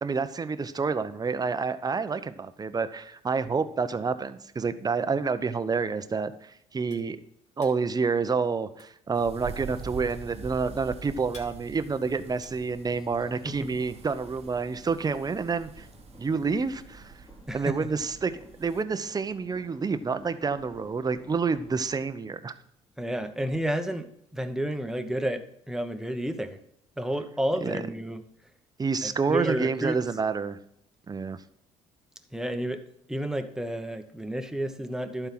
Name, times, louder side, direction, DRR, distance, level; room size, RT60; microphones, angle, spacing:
voice 1, 0.0-7.2 7.6-15.9 16.2-17.1 17.5-18.3 18.6-22.5 27.6-27.8 28.8-30.6 31.1-31.4, right 5 dB, 25° right, 12 dB, 0.8 m, -28 dB
sound 1, 6.9-13.4, left 3 dB, 55° left, 2.5 m, -55 dB
sound 2, 9.1-18.8, right 6 dB, 45° right, 1.1 m, -45 dB
sound 3, 13.2-22.1, left 2 dB, 35° left, 3.1 m, -54 dB
voice 2, 17.5-17.8 23.0-24.1 24.3-26.6 27.0-28.2 29.0-30.0 32.3-32.8 33.1-35.3, right 1 dB, 5° right, 7 dB, 1.1 m, -31 dB
11.5 x 4.6 x 6.0 m, 0.74 s
supercardioid pair, 70°, 14 cm